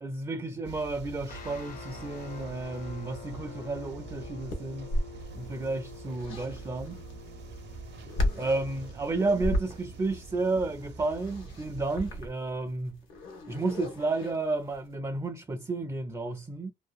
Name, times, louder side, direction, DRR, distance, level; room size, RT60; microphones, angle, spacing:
voice 1, 0.0-4.9 5.3-7.0 8.4-13.0 13.5-16.7, right 3 dB, 15° right, 0.4 m, -32 dB
sound 1, 0.6-12.0, right 5 dB, 65° right, 0.6 m, -45 dB
sound 2, 1.2-11.7, left 7 dB, 45° left, 0.5 m, -48 dB
sound 3, 4.5-14.9, left 1 dB, 85° left, 1.0 m, -36 dB
2.6 x 2.2 x 2.3 m
cardioid pair, 90°, 20 cm